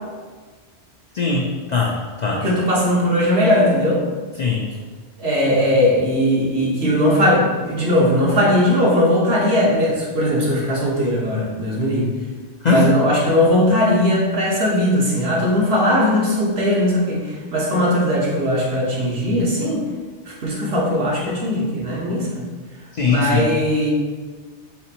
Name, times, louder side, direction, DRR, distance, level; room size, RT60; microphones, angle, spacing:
voice 1, 1.1-2.4 4.4-4.7 12.6-12.9 22.9-23.5, left 4 dB, 55° left, -2 dB, 0.5 m, -20 dB
voice 2, 2.3-4.0 5.2-12.1 12.7-19.9 20.3-22.5 23.1-23.9, left 1 dB, 65° right, -4 dB, 1.3 m, -19 dB
4.2 x 4.1 x 2.8 m, 1.4 s
omnidirectional pair, 1.1 m